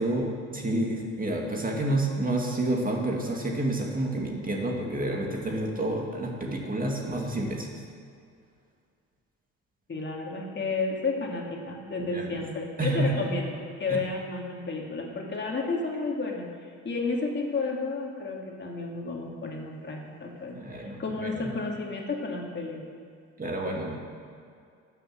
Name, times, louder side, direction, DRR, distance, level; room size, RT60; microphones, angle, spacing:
voice 1, 0.0-7.8 12.1-12.4 12.8-13.3 13.9-14.0 20.5-21.5 23.4-24.0, right 1 dB, 30° right, 0 dB, 2.4 m, -29 dB
voice 2, 9.9-16.5 16.8-22.8, left 3 dB, 35° left, -1 dB, 2.3 m, -32 dB
12.5 x 7.9 x 7.8 m, 2.3 s
cardioid pair, 90°, 30 cm